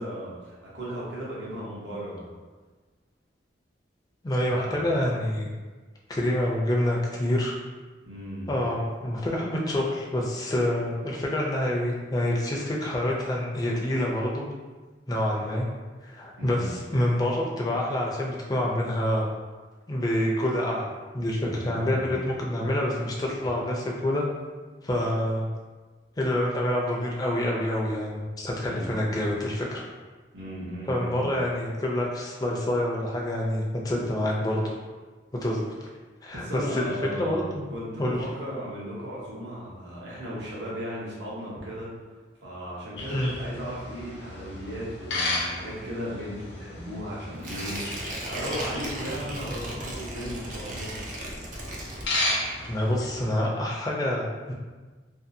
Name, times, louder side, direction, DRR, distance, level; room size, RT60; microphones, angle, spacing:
voice 1, 0.0-2.3 4.5-5.0 8.0-8.6 16.4-16.7 21.4-22.2 28.7-28.9 30.3-31.3 36.3-41.9 42.4-48.0 48.2-50.9, equal, 80° right, -6 dB, 0.9 m, -36 dB
voice 2, 4.2-5.4 6.1-7.6 8.5-14.5 15.1-15.7 16.0-19.3 19.9-24.2 24.8-25.5 26.2-29.8 30.9-34.7 35.3-35.6 36.2-37.6 38.0-38.2 43.1-43.3 52.6-54.5, left 1 dB, 20° left, -3 dB, 0.3 m, -27 dB
sound 1, 43.0-53.3, left 2 dB, 75° left, 0.5 m, -35 dB
Tearing, 47.4-52.5 52.9-53.0, right 1 dB, 45° right, 0.4 m, -36 dB
2.6 x 2.4 x 2.6 m, 1.3 s
head